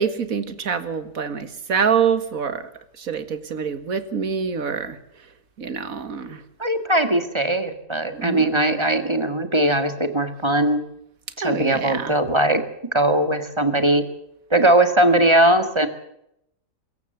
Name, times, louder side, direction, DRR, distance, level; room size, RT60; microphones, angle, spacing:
voice 1, 0.0-2.7 3.0-5.0 5.6-6.4 8.1-8.5 11.4-12.1, right 6 dB, 55° right, 12 dB, 2.1 m, -25 dB
voice 2, 6.6-10.8 11.4-12.6 12.9-14.1 14.5-15.9, right 1 dB, 15° right, 9 dB, 1.9 m, -19 dB
24.0 x 14.5 x 8.0 m, 0.79 s
omnidirectional pair, 1.8 m